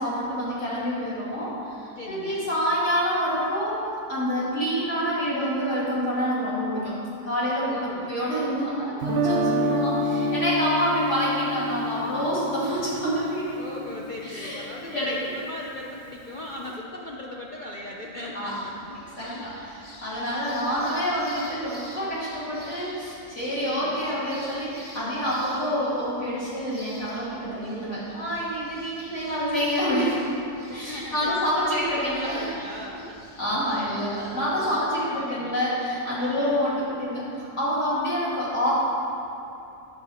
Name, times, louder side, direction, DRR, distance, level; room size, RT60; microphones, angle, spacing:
voice 1, 0.0-3.8 4.1-13.5 14.2-14.6 14.9-15.1 18.3-18.5 19.2-30.2 30.7-32.5 33.4-38.7, equal, 45° left, -9 dB, 2.7 m, -27 dB
voice 2, 1.8-2.5 7.7-8.2 9.4-9.9 13.5-19.7 23.6-24.0 30.7-33.2 35.0-35.5 36.2-36.7, left 2 dB, 70° left, -3 dB, 0.4 m, -38 dB
Guitar, 9.0-15.0, left 1 dB, 55° right, 0.8 m, -28 dB
sound 1, 18.5-34.8, left 1 dB, 15° left, 1.8 m, -48 dB
8.8 x 7.3 x 4.2 m, 2.7 s
omnidirectional pair, 1.7 m